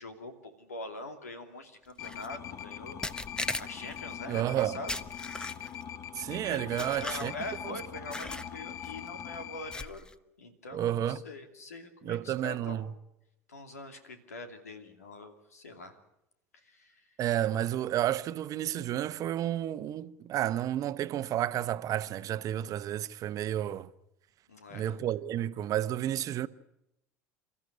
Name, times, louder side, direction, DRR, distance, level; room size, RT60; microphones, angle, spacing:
voice 1, 0.0-3.0 3.6-4.9 6.5-10.1 10.4-12.8 13.5-16.0 16.5-17.1 24.5-24.9, left 2 dB, 85° left, 2.7 m, -43 dB
sound 1, 2.0-9.9, left 9 dB, 40° left, 1.4 m, -42 dB
sound 2, 2.0-2.3 3.0-4.0 4.9-5.8 6.8-7.6 8.1-8.5 8.8-9.1 9.7-10.1, left 2 dB, 10° left, 1.0 m, -38 dB
voice 2, 4.3-4.8 6.2-7.3 7.6-7.7 10.7-11.2 12.0-12.9 17.2-23.9 24.7-26.5, right 12 dB, 45° right, 1.0 m, -31 dB
28.5 x 14.0 x 9.7 m
hypercardioid pair, 75°, 8 cm